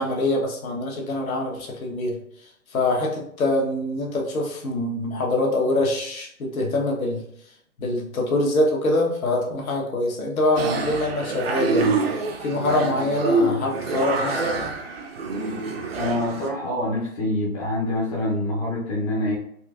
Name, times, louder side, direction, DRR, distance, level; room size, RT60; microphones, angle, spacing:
voice 1, 0.0-2.1 2.7-7.2 7.8-12.0 12.4-14.8, left 2 dB, 70° left, 0 dB, 1.1 m, -24 dB
sound 1, 10.6-16.5, right 3 dB, 45° right, 0.5 m, -26 dB
voice 2, 16.0-19.4, left 1 dB, 25° left, -4 dB, 0.6 m, -25 dB
4.2 x 2.5 x 2.4 m, 0.67 s
hypercardioid pair, 140°, 44 cm